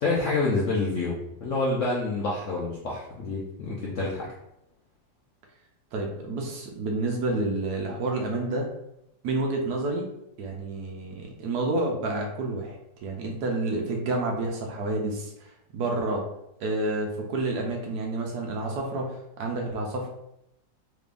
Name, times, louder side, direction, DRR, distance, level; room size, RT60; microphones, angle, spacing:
voice 1, 0.0-4.3, left 3 dB, 70° left, -5 dB, 0.7 m, -27 dB
voice 2, 5.9-8.7 9.2-10.1 10.4-16.2 16.6-20.1, right 2 dB, 70° right, 1 dB, 1.1 m, -29 dB
3.5 x 3.3 x 2.4 m, 0.82 s
omnidirectional pair, 2.0 m